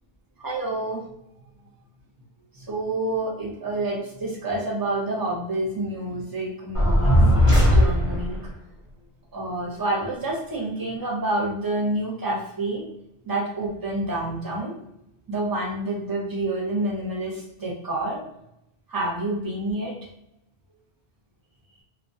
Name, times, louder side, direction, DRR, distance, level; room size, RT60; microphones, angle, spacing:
voice 1, 0.4-1.0 2.5-7.2 7.7-8.4 9.3-12.8 13.2-14.7 15.3-18.2 18.9-19.9, right 2 dB, 25° right, -3 dB, 0.5 m, -28 dB
sound 1, 6.7-8.4, equal, 35° left, 0.7 m, -17 dB
2.3 x 2.2 x 2.6 m, 0.83 s
omnidirectional pair, 1.1 m